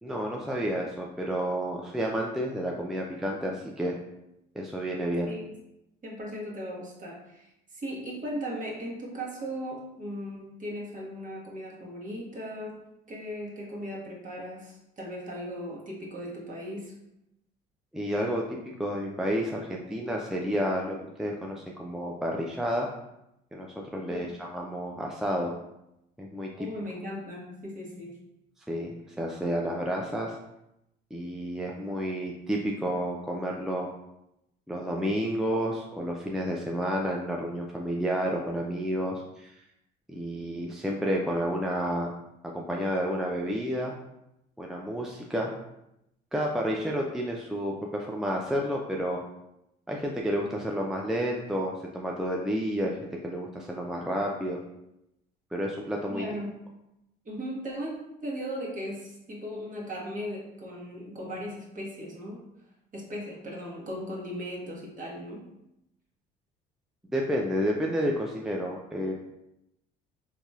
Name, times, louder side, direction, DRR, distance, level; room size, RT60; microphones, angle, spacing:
voice 1, 0.0-3.9 4.6-5.3 17.9-22.9 23.5-25.5 26.2-26.7 28.7-28.9 29.2-30.4 31.1-33.9 34.7-39.6 40.1-42.1 42.4-43.9 44.6-45.5 46.3-49.2 49.9-53.0 53.2-54.6 55.5-56.3 67.1-69.1, equal, ahead, -1 dB, 0.4 m, -30 dB
voice 2, 6.0-16.9 24.1-24.3 26.6-28.2 56.1-56.5 57.2-62.4 62.9-65.5, equal, 40° right, -2 dB, 1.4 m, -37 dB
4.0 x 2.7 x 2.4 m, 0.85 s
supercardioid pair, 70°, 21 cm